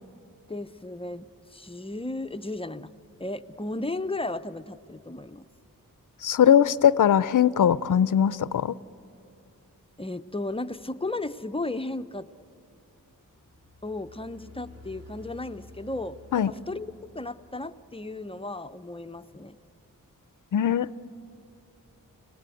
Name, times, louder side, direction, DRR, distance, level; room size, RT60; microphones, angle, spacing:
voice 1, 0.5-2.9 3.2-5.5 10.0-12.3 13.8-16.9 17.1-19.6, left 2 dB, 15° left, 11 dB, 0.6 m, -34 dB
voice 2, 6.2-8.8 16.3-16.5 20.5-20.9, left 9 dB, 65° left, 18 dB, 0.6 m, -20 dB
sound 1, 13.4-18.1, left 2 dB, 45° right, 4.0 m, -51 dB
30.0 x 18.0 x 9.1 m, 2.8 s
wide cardioid pair, 95°, 34 cm